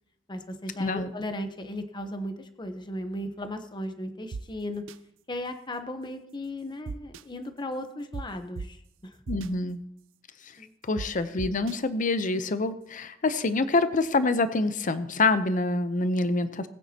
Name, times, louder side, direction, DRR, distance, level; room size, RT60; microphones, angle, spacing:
voice 1, 0.3-4.8 5.3-9.2 10.6-10.7, left 1 dB, 25° left, 8 dB, 0.9 m, -36 dB
sound 1, 4.3-4.4 4.9-5.0 6.9-7.2 8.1-8.2 8.6-8.7 9.3-9.5 11.0-11.1 11.4-11.7, right 4 dB, 85° right, 0.5 m, -35 dB
voice 2, 9.3-9.8 10.9-16.7, left 3 dB, 45° left, 12 dB, 0.6 m, -26 dB
20.5 x 9.0 x 2.9 m, 0.77 s
head